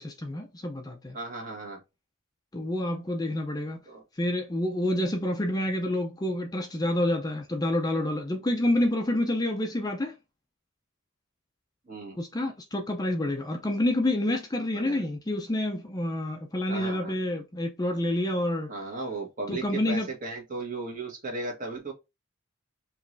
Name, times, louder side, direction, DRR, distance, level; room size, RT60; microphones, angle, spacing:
voice 1, 0.0-1.2 2.5-3.8 4.2-10.1 12.1-18.7 19.5-20.1, left 1 dB, 20° left, 0.5 m, -28 dB
voice 2, 1.1-1.8 3.9-4.0 11.9-12.2 14.7-15.0 16.7-17.1 18.7-21.9, right 2 dB, 40° right, 1.5 m, -36 dB
5.1 x 3.1 x 2.6 m
head